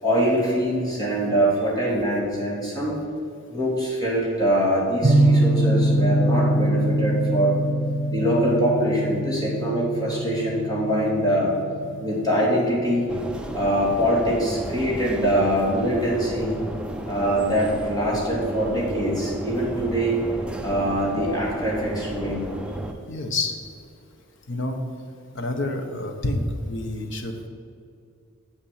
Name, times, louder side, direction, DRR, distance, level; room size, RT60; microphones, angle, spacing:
voice 1, 0.0-3.0 3.5-7.6 8.1-11.5 12.0-13.0 13.5-16.6 17.0-20.2 20.6-22.4, equal, 20° left, -4 dB, 2.6 m, -23 dB
sound 1, 5.0-13.7, right 1 dB, 40° right, 0.9 m, -23 dB
sound 2, 13.1-22.9, right 1 dB, 5° right, 0.6 m, -33 dB
voice 2, 23.1-23.5 24.5-24.8 25.3-27.5, left 2 dB, 60° left, 4 dB, 1.1 m, -28 dB
7.1 x 7.1 x 7.5 m, 2.4 s
head